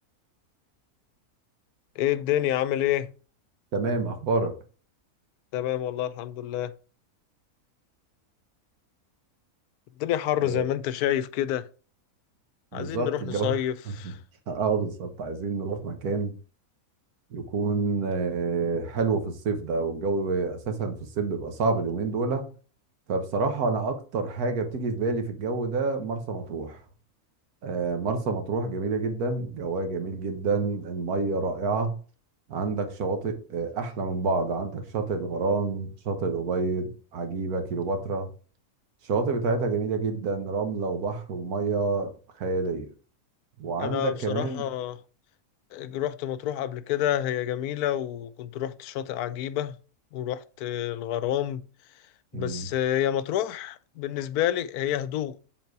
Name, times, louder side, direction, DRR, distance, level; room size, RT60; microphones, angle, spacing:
voice 1, 2.0-3.1 5.5-6.7 10.0-11.7 12.7-14.2 43.8-45.0 45.7-49.7 50.1-51.6 52.3-55.4, left 11 dB, 85° left, 1.1 m, -28 dB
voice 2, 3.7-4.5 10.4-10.6 12.7-13.5 14.5-16.3 17.3-22.4 23.1-26.8 27.6-32.0 32.5-38.3 39.0-42.1 42.4-42.9 43.6-44.6 52.3-52.7, right 4 dB, 80° right, 1.6 m, -28 dB
7.2 x 4.0 x 4.6 m
omnidirectional pair, 1.6 m